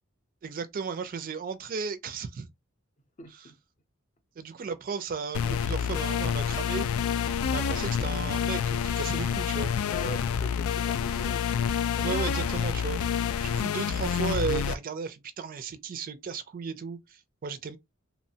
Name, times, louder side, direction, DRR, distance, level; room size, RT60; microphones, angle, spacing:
voice 1, 0.4-2.5 3.3-3.5 4.4-6.9 7.5-9.8 12.0-17.8, right 5 dB, 40° right, 0.4 m, -35 dB
voice 2, 3.2-3.6 9.8-11.4 13.4-13.7, left 2 dB, 35° left, 0.6 m, -41 dB
sound 1, 5.3-14.7, left 7 dB, 90° left, 0.3 m, -28 dB
2.9 x 2.1 x 2.7 m
head